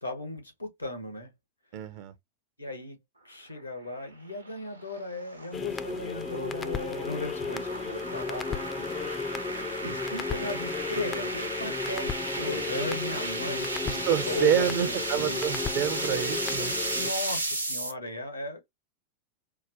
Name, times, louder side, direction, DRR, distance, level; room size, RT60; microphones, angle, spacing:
voice 1, 0.0-1.3 2.6-3.0 3.2-9.1 9.8-15.4 17.0-18.7, left 2 dB, 85° left, 1.2 m, -37 dB
voice 2, 1.7-2.1 9.8-9.9 13.9-16.7, right 10 dB, 45° right, 0.5 m, -28 dB
sound 1, 4.0-17.9, right 2 dB, 85° right, 0.8 m, -34 dB
sound 2, 5.5-17.1, left 5 dB, 20° left, 0.4 m, -34 dB
4.6 x 2.1 x 2.6 m
figure-of-eight pair, 90°, 0 cm